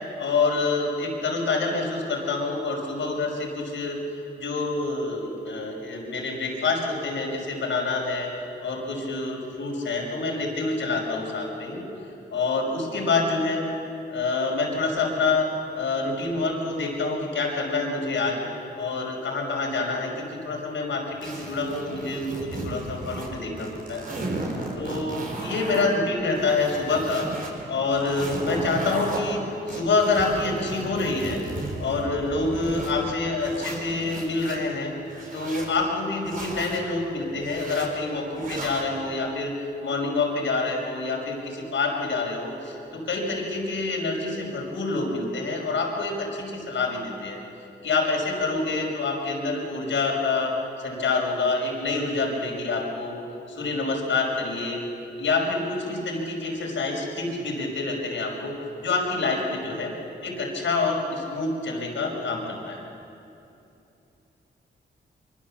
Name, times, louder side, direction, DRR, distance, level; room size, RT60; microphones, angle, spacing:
voice 1, 0.2-4.0 4.4-8.3 8.6-11.8 12.3-13.6 14.1-15.5 15.7-18.4 18.7-24.1 24.8-27.3 27.7-31.4 31.8-34.9 35.3-39.5 39.8-47.4 47.8-50.5 50.8-53.2 53.5-54.8 55.2-59.9 60.2-62.8, left 3 dB, 85° left, 0 dB, 5.5 m, -27 dB
sound 1, 21.2-23.3 23.6-25.9 26.3-27.5 27.9-29.2 29.7-32.9 33.4-34.6 35.1-35.7 36.2-36.8 37.4-37.9 38.4-38.9, right 2 dB, 45° right, 5.0 m, -35 dB
25.5 x 24.5 x 7.5 m, 2.8 s
wide cardioid pair, 145°, 19 cm